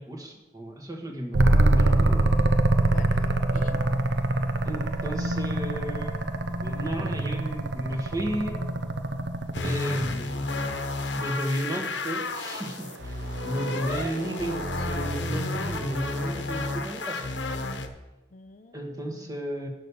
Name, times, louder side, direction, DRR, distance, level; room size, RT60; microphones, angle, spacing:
voice 1, 0.0-2.2 4.6-6.2 6.6-8.6 9.6-10.5 11.2-17.3 18.7-19.7, equal, 20° right, 3 dB, 1.3 m, -33 dB
sound 1, 1.3-9.9 12.1-16.7, right 2 dB, 70° right, 0.7 m, -25 dB
voice 2, 2.8-3.8 18.3-19.3, left 3 dB, 40° left, 8 dB, 0.5 m, -46 dB
sound 2, 9.5-17.9, left 2 dB, 70° left, 1.0 m, -31 dB
9.7 x 6.4 x 6.9 m, 1.1 s
head